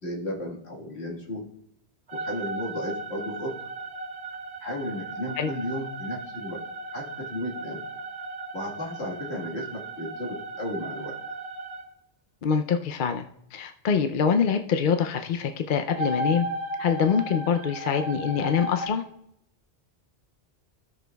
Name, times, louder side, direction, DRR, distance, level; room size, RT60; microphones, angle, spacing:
voice 1, 0.0-1.4 2.1-3.5 4.6-6.6 6.9-7.8 8.5-11.2, left 1 dB, 75° left, -2 dB, 1.9 m, -34 dB
sound 1, 2.1-11.9 15.9-18.9, right 1 dB, 75° right, 1.6 m, -35 dB
voice 2, 12.4-16.5 16.8-19.0, left 6 dB, 55° left, 6 dB, 0.7 m, -25 dB
16.5 x 6.1 x 2.3 m, 0.74 s
omnidirectional pair, 1.1 m